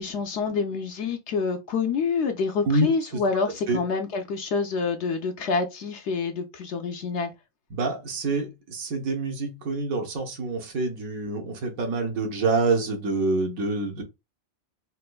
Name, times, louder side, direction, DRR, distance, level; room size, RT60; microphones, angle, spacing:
voice 1, 0.0-7.3, left 5 dB, 65° left, 0.8 m, -27 dB
voice 2, 7.7-14.0, right 3 dB, 80° right, 1.3 m, -26 dB
4.2 x 2.5 x 2.2 m
omnidirectional pair, 1.5 m